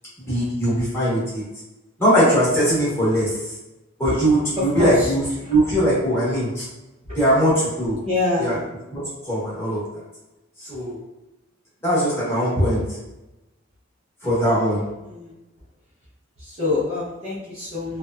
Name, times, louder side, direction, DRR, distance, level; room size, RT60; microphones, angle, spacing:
voice 1, 0.2-1.4 2.0-3.4 4.0-5.2 5.5-6.6 7.1-8.0 8.4-8.5 8.9-9.8 10.6-11.0 11.8-13.0 14.2-14.8, equal, 10° left, -9 dB, 1.0 m, -20 dB
voice 2, 4.6-5.1 5.4-5.6 7.1-7.2 8.0-8.7 14.4-14.7 15.0-15.4 16.4-18.0, left 2 dB, 30° right, -8 dB, 0.6 m, -26 dB
2.9 x 2.1 x 2.3 m, 0.98 s
head